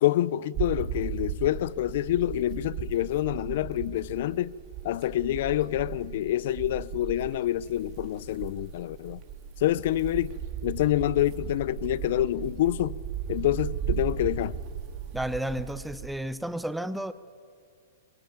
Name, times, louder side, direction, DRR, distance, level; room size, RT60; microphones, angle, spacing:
voice 1, 0.0-4.5 4.8-9.2 9.6-10.3 10.6-13.0 13.3-14.5, left 13 dB, 55° left, 0.5 m, -27 dB
sound 1, 0.5-16.1, right 9 dB, 30° right, 2.8 m, -36 dB
voice 2, 15.1-17.1, right 1 dB, ahead, 0.6 m, -32 dB
22.0 x 17.0 x 9.2 m
hypercardioid pair, 150°, 0 cm